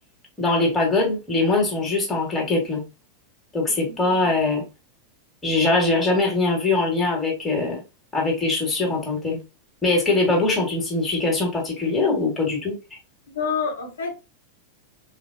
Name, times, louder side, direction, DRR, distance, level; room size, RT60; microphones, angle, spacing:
voice 1, 0.4-2.8 3.5-4.6 5.4-7.8 8.1-9.4 9.8-12.7, left 3 dB, 10° left, 1.4 m, -22 dB
voice 2, 3.8-4.3 13.3-14.1, left 5 dB, 65° left, 1.1 m, -28 dB
3.7 x 2.2 x 2.4 m
figure-of-eight pair, 90°, 0 cm